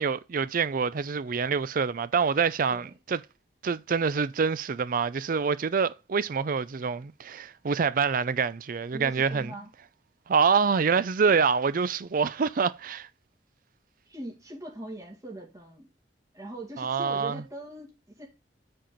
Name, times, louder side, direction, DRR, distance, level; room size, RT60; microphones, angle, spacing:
voice 1, 0.0-3.2 3.6-9.5 10.3-13.1 16.8-17.4, right 5 dB, 50° right, 0.4 m, -26 dB
voice 2, 8.9-9.7 10.9-11.1 14.1-15.9 16.3-18.3, right 1 dB, 20° right, 2.2 m, -41 dB
7.6 x 4.4 x 5.0 m
head